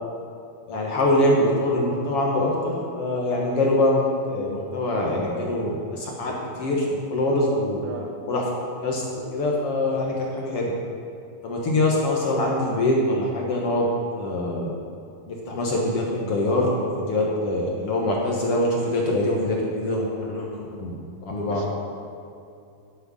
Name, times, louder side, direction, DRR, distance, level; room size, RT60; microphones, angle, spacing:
voice 1, 0.7-4.0 4.3-6.3 6.6-7.8 8.3-8.4 8.8-9.0 9.3-10.7 11.4-13.9 14.2-14.7 15.3-21.0 21.3-21.6, left 1 dB, 55° left, -2 dB, 1.9 m, -24 dB
voice 2, 7.8-8.5 21.5-21.8, right 4 dB, 80° right, 1 dB, 2.9 m, -38 dB
11.0 x 8.2 x 6.4 m, 2.5 s
omnidirectional pair, 3.7 m